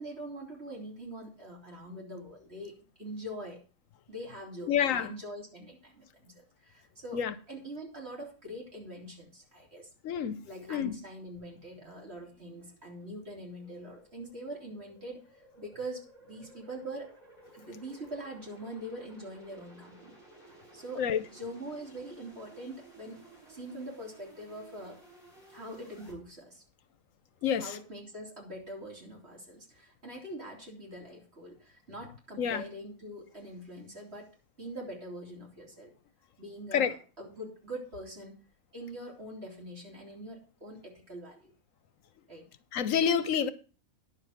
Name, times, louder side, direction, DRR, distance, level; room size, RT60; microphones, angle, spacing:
voice 1, 0.0-3.6 4.1-7.2 7.5-9.9 10.4-15.2 15.6-17.2 17.5-20.1 20.7-25.0 25.5-26.6 27.6-34.3 34.6-35.9 36.4-38.4 38.7-41.5 42.3-42.5, right 1 dB, 50° right, 3.9 m, -43 dB
voice 2, 4.6-5.1 7.1-7.3 10.0-10.4 10.7-11.0 21.0-21.2 27.4-27.8 32.4-32.6 36.7-36.9 42.7-43.5, left 8 dB, 75° left, 1.1 m, -28 dB
sound 1, 11.3-26.1, right 2 dB, 15° right, 6.3 m, -57 dB
10.5 x 7.0 x 5.8 m
omnidirectional pair, 1.4 m